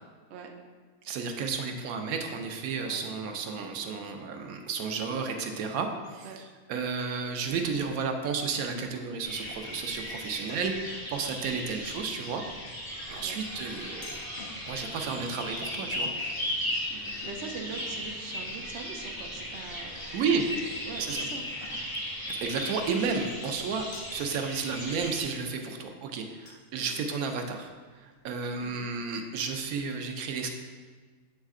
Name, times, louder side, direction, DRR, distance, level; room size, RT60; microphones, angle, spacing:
voice 1, 1.0-6.4 6.7-12.4 13.1-14.2 14.6-17.3 20.1-20.4 21.0-21.3 22.3-27.7 28.0-30.5, right 5 dB, 80° right, 4 dB, 1.1 m, -32 dB
sound 1, 8.9-9.8 10.3-10.9 11.3-11.9 12.3-12.5 13.0-13.2 14.2-14.8 15.9-16.0 17.1-18.0 18.4-18.5 19.2-19.6 20.1-20.4 21.0-21.1 21.3-21.8, left 4 dB, 50° left, 1.0 m, -52 dB
sound 2, 9.2-25.2, left 1 dB, 20° left, 0.9 m, -37 dB
voice 2, 11.3-11.8 13.2-13.4 16.6-20.3 20.8-21.4 25.6-25.9 26.8-27.0 28.6-28.9, right 5 dB, 60° right, 2 dB, 0.7 m, -43 dB
Chink clink, 14.0-17.2 18.8-20.4 21.1-21.4 23.9-24.3 26.5-26.6 26.9-27.0 27.7-27.8 27.9-28.0, left 2 dB, 80° left, 1.4 m, -51 dB
8.2 x 3.2 x 3.6 m, 1.5 s
omnidirectional pair, 1.5 m